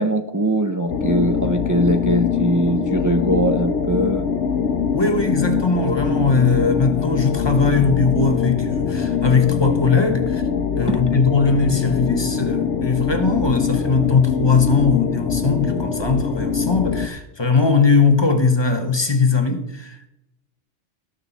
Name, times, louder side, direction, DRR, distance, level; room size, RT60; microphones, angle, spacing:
voice 1, 0.0-4.3 10.9-11.0, right 1 dB, 20° right, 0.5 m, -21 dB
sound 1, 0.9-17.1, left 6 dB, 75° left, 1.4 m, -23 dB
voice 2, 4.9-10.4 10.7-20.1, left 4 dB, 25° left, 1.3 m, -19 dB
18.5 x 6.7 x 4.1 m
omnidirectional pair, 1.2 m